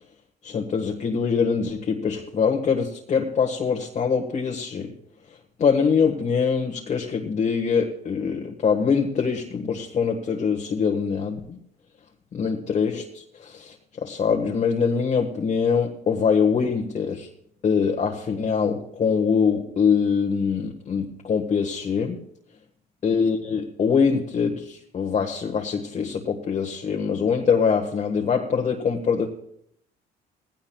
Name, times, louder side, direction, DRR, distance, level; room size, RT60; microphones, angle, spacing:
voice 1, 0.4-4.9 5.6-11.6 12.3-13.8 14.0-17.3 17.6-22.2 23.0-29.3, left 6 dB, 45° left, 2 dB, 1.5 m, -23 dB
19.0 x 16.5 x 2.3 m, 0.72 s
cardioid pair, 110°, 17 cm